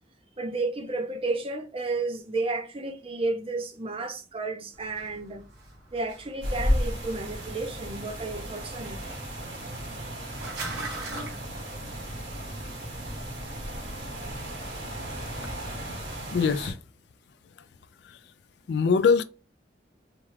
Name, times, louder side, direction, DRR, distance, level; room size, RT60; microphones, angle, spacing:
voice 1, 0.4-5.4 5.9-9.0, right 3 dB, 30° right, 0.6 m, -32 dB
sound 1, 4.7-13.4, right 2 dB, 65° right, 1.4 m, -43 dB
sound 2, 6.4-16.7, equal, 85° right, 2.0 m, -34 dB
voice 2, 16.3-16.8 18.0-18.2 18.7-19.2, left 5 dB, 65° left, 0.3 m, -22 dB
4.3 x 2.4 x 3.1 m
head